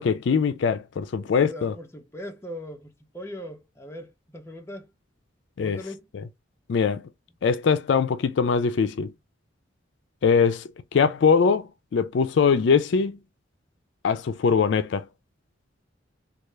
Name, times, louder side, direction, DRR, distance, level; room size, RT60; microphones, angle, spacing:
voice 1, 0.0-1.7 5.6-5.8 6.1-6.2 6.7-7.0 7.4-9.1 10.2-13.2 14.0-15.0, left 5 dB, 65° left, 0.4 m, -22 dB
voice 2, 1.2-4.9 5.6-6.1, equal, 15° left, 0.5 m, -40 dB
3.3 x 2.4 x 3.1 m
head